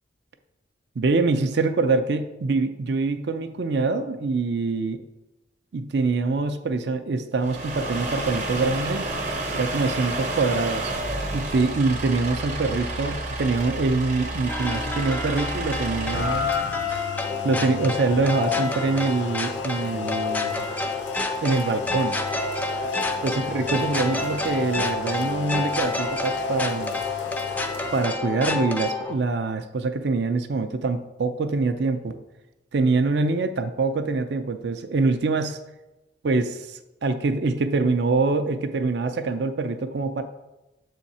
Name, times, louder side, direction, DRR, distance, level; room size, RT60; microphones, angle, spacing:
voice 1, 1.0-5.0 5.7-9.1 9.5-10.9 11.3-16.5 17.4-20.7 21.4-22.2 23.2-27.0 27.9-32.2 32.7-35.6 36.2-40.2, right 3 dB, 60° right, 9 dB, 0.5 m, -24 dB
sound 1, 7.4-16.7, right 2 dB, 40° right, 0.8 m, -30 dB
sound 2, 14.5-29.1, left 2 dB, 10° left, 0.4 m, -29 dB
Rain, 16.1-28.1, left 9 dB, 70° left, 0.5 m, -33 dB
7.3 x 3.6 x 4.2 m, 1.0 s
head